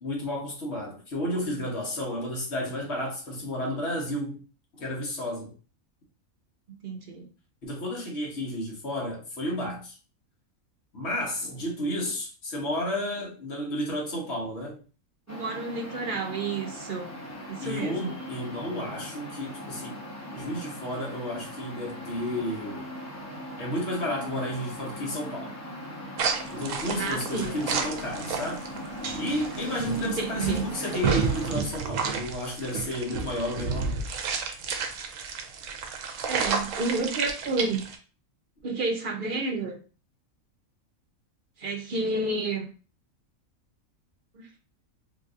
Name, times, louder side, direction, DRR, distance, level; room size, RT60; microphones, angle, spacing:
voice 1, 0.0-4.4 4.7-5.5 7.6-10.0 10.9-14.8 17.6-19.9 20.3-22.8 23.6-25.5 26.5-28.6 29.1-34.1, left 1 dB, 50° left, 1.4 m, -32 dB
voice 2, 6.7-7.3 15.3-17.1 17.5-18.1 27.0-27.6 30.0-30.7 36.3-37.9 38.6-39.8 41.6-42.7 44.3-44.5, right 3 dB, 50° right, 0.6 m, -30 dB
sound 1, 15.3-31.5, equal, 15° left, 0.7 m, -39 dB
sound 2, 26.2-38.0, right 5 dB, 70° right, 0.9 m, -31 dB
3.8 x 2.7 x 2.4 m
omnidirectional pair, 1.4 m